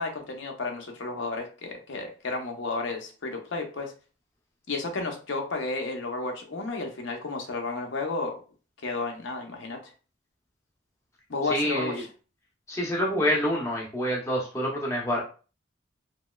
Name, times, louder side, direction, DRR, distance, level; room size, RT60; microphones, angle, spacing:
voice 1, 0.0-3.9 4.7-8.4 8.8-9.9 11.3-12.1, left 3 dB, 65° left, 3 dB, 0.6 m, -32 dB
voice 2, 11.5-12.0 12.7-15.2, equal, 15° left, -2 dB, 0.6 m, -27 dB
3.0 x 2.8 x 2.2 m, 0.36 s
head